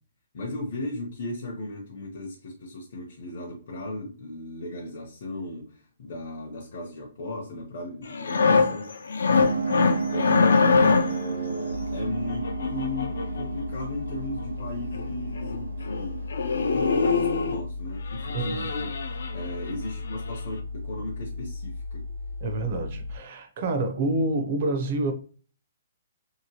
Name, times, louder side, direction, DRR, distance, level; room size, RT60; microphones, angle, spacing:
voice 1, 0.3-8.9 10.1-10.3 10.7-16.2 16.7-18.9 19.3-22.0, left 2 dB, 45° left, 0.7 m, -36 dB
sound 1, 8.1-11.3 12.3-13.5 14.6-14.7 14.9-15.1 15.4-15.6 15.9-16.1 16.3-17.6 18.1-19.7 20.1-20.3, left 4 dB, 80° left, 0.4 m, -24 dB
sound 2, 9.4-17.5, right 4 dB, 90° right, 0.3 m, -33 dB
sound 3, 11.7-23.2, left 3 dB, 65° right, 0.9 m, -36 dB
voice 2, 18.3-18.7 22.4-25.1, right 2 dB, 35° right, 0.5 m, -28 dB
3.0 x 2.8 x 2.8 m
hypercardioid pair, 175°, 0 cm